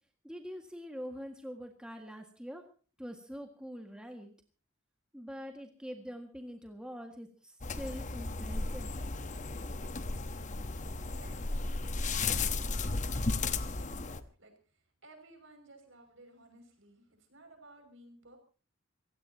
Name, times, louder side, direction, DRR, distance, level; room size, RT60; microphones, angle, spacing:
voice 1, 0.2-2.6 3.0-4.3 5.1-9.0, equal, 5° right, 3 dB, 1.8 m, -44 dB
sound 1, 7.6-14.2, left 3 dB, 35° left, 1.0 m, -34 dB
voice 2, 12.1-18.4, right 2 dB, 65° right, 6 dB, 6.0 m, -57 dB
26.0 x 17.0 x 2.8 m, 0.38 s
head